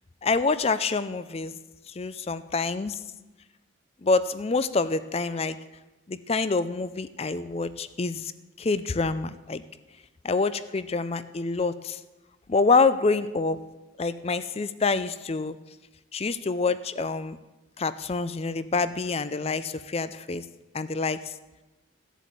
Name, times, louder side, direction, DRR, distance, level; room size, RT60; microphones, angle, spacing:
voice 1, 0.2-1.5 1.9-3.0 4.0-5.6 6.1-8.3 8.6-9.6 10.2-12.0 12.5-13.6 14.0-15.6 16.1-17.4 17.8-20.4 20.7-21.3, left 4 dB, 30° left, 14 dB, 0.4 m, -26 dB
13.5 x 8.2 x 7.5 m, 1.1 s
head